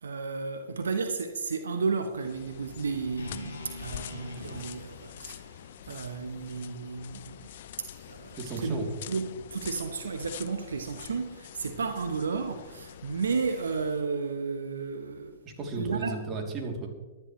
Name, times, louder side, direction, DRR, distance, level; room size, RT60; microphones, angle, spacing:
voice 1, 0.0-5.6 5.9-7.5 7.8-15.4 15.8-16.2, right 4 dB, 75° right, 1.0 m, -33 dB
sound 1, 2.1-14.0, left 11 dB, 60° left, 0.7 m, -46 dB
sound 2, 3.2-7.3, left 2 dB, 90° left, 4.1 m, -45 dB
voice 2, 8.4-8.9 15.4-16.9, right 3 dB, 30° right, 3.0 m, -34 dB
24.0 x 10.5 x 3.2 m
hypercardioid pair, 110°, 0 cm